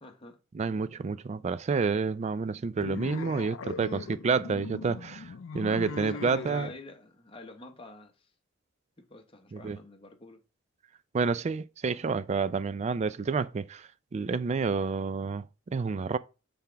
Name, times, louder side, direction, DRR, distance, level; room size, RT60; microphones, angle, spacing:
voice 1, 0.0-0.4 3.9-4.1 6.0-8.3 9.0-10.4, left 2 dB, 25° left, 0.8 m, -47 dB
voice 2, 0.5-6.7 9.5-9.8 11.1-16.2, right 4 dB, 35° right, 0.3 m, -29 dB
sound 1, 2.8-6.8, left 5 dB, 75° left, 0.4 m, -39 dB
5.7 x 3.5 x 5.7 m
head